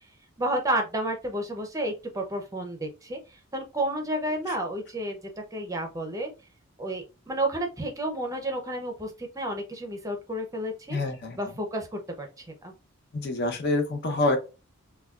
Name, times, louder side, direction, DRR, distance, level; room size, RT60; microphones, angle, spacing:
voice 1, 0.4-3.2 3.5-5.2 5.5-6.3 6.8-11.0 11.4-12.7, right 1 dB, 15° right, 4 dB, 0.6 m, -31 dB
voice 2, 10.9-11.4 13.1-14.4, left 2 dB, 50° left, 5 dB, 0.8 m, -26 dB
6.0 x 2.3 x 2.3 m, 0.30 s
head